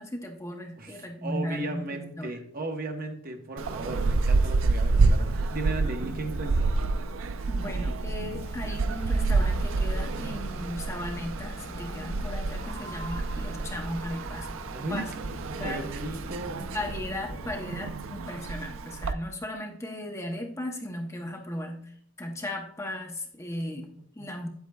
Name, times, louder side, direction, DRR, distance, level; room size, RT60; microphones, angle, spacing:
voice 1, 0.0-2.4 7.5-14.5 14.9-15.1 15.5-15.8 16.6-21.9 22.2-24.5, left 1 dB, 15° left, 2 dB, 0.7 m, -36 dB
voice 2, 0.8-6.7 14.7-15.1 15.6-16.6 24.2-24.3, right 2 dB, 45° right, 4 dB, 1.0 m, -36 dB
sound 1, 3.6-19.1, right 3 dB, 70° right, 0.4 m, -28 dB
sound 2, 8.3-17.6, equal, 45° left, 3.1 m, -42 dB
9.1 x 8.2 x 2.3 m, 0.64 s
head